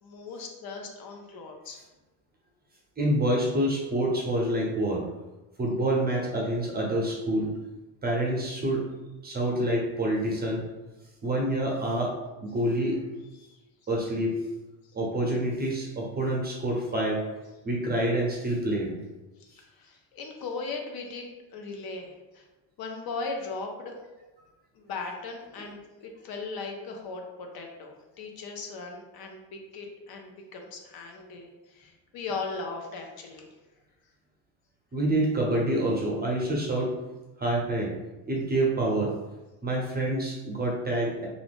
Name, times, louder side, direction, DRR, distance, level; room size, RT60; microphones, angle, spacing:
voice 1, 0.0-1.8 13.4-13.6 19.4-21.3 21.5-22.5 22.8-24.0 24.7-33.6, left 4 dB, 55° left, 2 dB, 0.6 m, -38 dB
voice 2, 3.0-5.0 5.6-7.5 8.0-8.8 9.2-10.6 11.2-12.1 12.4-13.0 13.9-14.4 14.9-17.2 17.6-19.0 34.9-36.9 37.4-38.0 38.3-39.1 39.6-41.3, right 1 dB, 20° right, -2 dB, 0.7 m, -27 dB
2.5 x 2.4 x 3.4 m, 1.1 s
cardioid pair, 105°, 44 cm